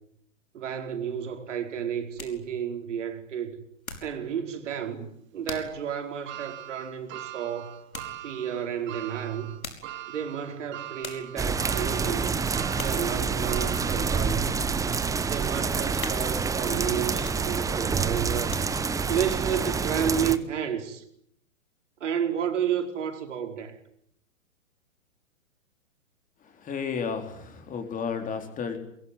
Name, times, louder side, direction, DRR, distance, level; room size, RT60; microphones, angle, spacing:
voice 1, 0.5-3.6 4.0-7.7 8.2-9.5 10.1-12.4 12.8-14.5 15.3-18.5 19.1-21.0 22.0-23.8, right 8 dB, 60° right, 4.9 m, -31 dB
sound 1, 1.9-4.3 4.6-4.9 5.5-5.8 6.3-6.4 7.9-8.2 9.4-10.0 10.6-10.7 11.0-11.4 11.9-12.2 12.8-13.1 13.6-13.7 14.3-15.1 15.6-15.7 16.0-16.6 17.1-17.8 18.2-19.0 19.5-19.6, left 3 dB, 85° left, 5.4 m, -42 dB
sound 2, 6.3-14.6 15.1-15.2 16.4-16.5, right 14 dB, 25° right, 3.0 m, -42 dB
sound 3, 11.4-20.4, right 5 dB, 10° right, 1.1 m, -27 dB
voice 2, 26.6-28.8, left 6 dB, 20° left, 4.2 m, -32 dB
24.0 x 22.0 x 9.8 m
figure-of-eight pair, 115°, 41 cm